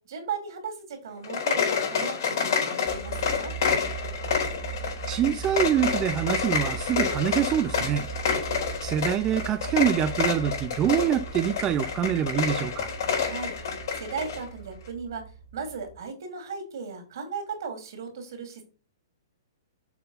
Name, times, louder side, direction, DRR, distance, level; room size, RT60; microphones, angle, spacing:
voice 1, 0.1-3.5 13.1-13.6 13.9-15.2 15.5-18.6, right 5 dB, 70° right, 2.8 m, -36 dB
sound 1, 1.2-14.4, left 6 dB, 65° left, 3.9 m, -29 dB
sound 2, 2.9-16.0, right 8 dB, 25° left, 1.7 m, -39 dB
voice 2, 5.1-8.1 8.8-12.9, right 10 dB, 25° right, 0.4 m, -25 dB
6.8 x 3.9 x 5.5 m
hypercardioid pair, 145°, 2 cm